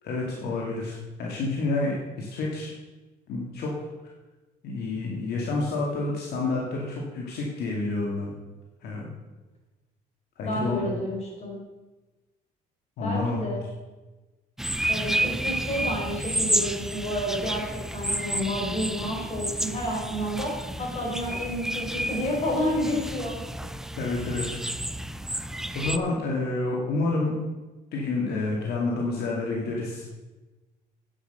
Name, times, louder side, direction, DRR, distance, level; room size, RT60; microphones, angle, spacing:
voice 1, 0.0-2.7 3.3-3.7 4.6-8.3 8.8-9.1 10.4-10.8 13.0-13.4 23.6-23.7 24.0-24.6 25.7-27.4 27.9-30.0, left 3 dB, 70° left, -2 dB, 2.3 m, -29 dB
voice 2, 10.4-11.6 13.0-13.6 14.9-23.4, equal, 40° left, -1 dB, 5.0 m, -30 dB
sound 1, 14.6-26.0, right 1 dB, 5° right, 0.5 m, -30 dB
9.9 x 9.0 x 6.6 m, 1.2 s
cardioid pair, 110°, 17 cm